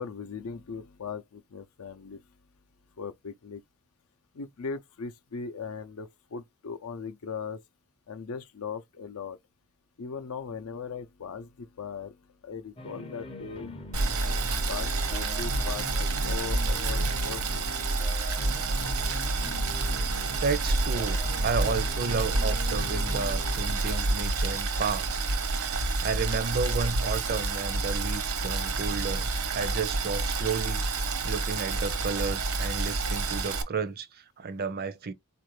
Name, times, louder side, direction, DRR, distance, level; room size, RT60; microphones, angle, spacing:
voice 1, 0.0-2.2 3.0-3.6 4.3-7.6 8.1-9.4 10.0-12.2 12.4-13.7 14.2-18.1, left 5 dB, 75° left, 0.5 m, -39 dB
sound 1, 12.8-24.0, left 2 dB, 25° left, 0.5 m, -42 dB
Boiling, 13.9-33.6, right 3 dB, 75° right, 0.8 m, -29 dB
voice 2, 19.7-30.8 31.2-35.1, right 5 dB, 45° right, 0.5 m, -32 dB
4.0 x 2.5 x 3.1 m
head